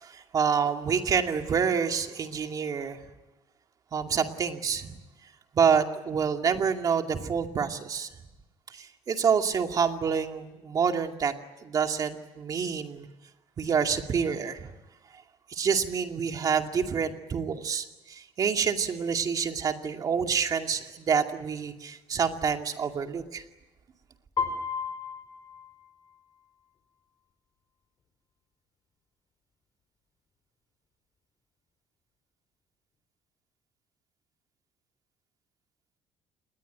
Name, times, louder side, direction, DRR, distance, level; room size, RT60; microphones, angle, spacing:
voice 1, 0.0-3.0 3.9-4.9 5.5-8.1 8.7-11.3 11.6-13.1 13.6-14.7 15.5-23.4, right 6 dB, 35° right, 5 dB, 2.4 m, -27 dB
Piano, 24.4-26.4, left 5 dB, 35° left, 4.5 m, -34 dB
28.0 x 21.0 x 9.5 m, 1.0 s
cardioid pair, 150°, 11 cm